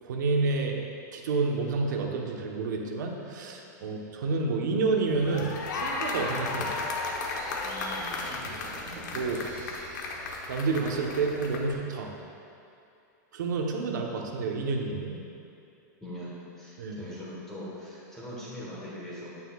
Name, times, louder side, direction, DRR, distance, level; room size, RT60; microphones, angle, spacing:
voice 1, 0.0-0.8 1.1-6.7 8.4-8.5 9.1-9.4 10.5-12.1 13.3-15.2 16.8-17.0, right 3 dB, 80° right, 1 dB, 1.1 m, -29 dB
sound 1, 5.1-11.7, left 3 dB, 80° left, 1.2 m, -34 dB
voice 2, 7.6-8.3 16.0-19.4, equal, 5° left, -9 dB, 1.3 m, -42 dB
sound 2, 8.0-11.7, right 2 dB, 35° right, 1.4 m, -49 dB
9.7 x 9.1 x 2.4 m, 2.6 s
supercardioid pair, 165°, 10 cm